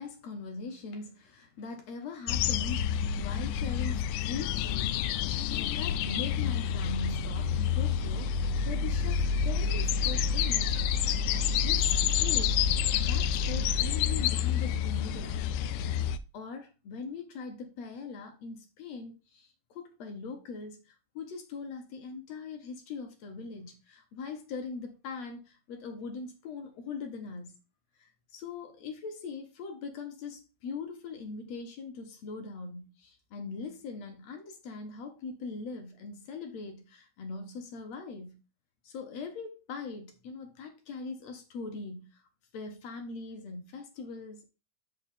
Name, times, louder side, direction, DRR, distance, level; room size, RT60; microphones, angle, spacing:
voice 1, 0.0-12.6 13.0-15.4 15.9-16.0 16.3-27.5 28.0-38.4 38.8-42.2 42.5-44.4, left 4 dB, 65° left, 2.2 m, -41 dB
sound 1, 2.3-16.2, left 7 dB, 85° left, 2.0 m, -28 dB
6.3 x 5.5 x 3.7 m
omnidirectional pair, 3.5 m